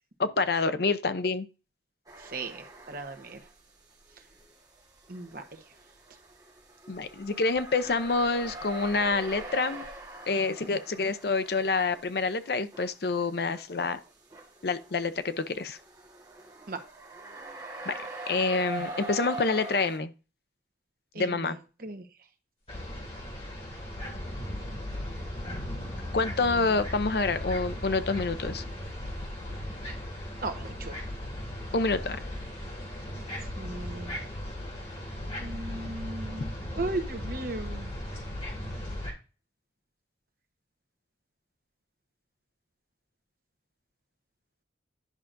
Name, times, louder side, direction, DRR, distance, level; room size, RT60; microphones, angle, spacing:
voice 1, 0.2-1.5 6.9-9.8 10.3-14.0 14.6-15.8 17.9-18.0 18.3-20.1 21.2-21.6 26.1-28.6 31.7-32.2, left 3 dB, 60° left, 0.6 m, -27 dB
sound 1, 2.1-3.6 3.9-20.0, right 2 dB, 20° right, 1.4 m, -43 dB
voice 2, 2.2-3.4 5.1-5.4 16.7-16.8 21.1-22.0 26.4-26.6 30.4-31.0 33.5-34.2 35.4-37.9, right 2 dB, 55° right, 1.1 m, -37 dB
sound 2, 22.7-39.1, left 1 dB, 30° left, 2.9 m, -37 dB
10.5 x 5.8 x 2.6 m
head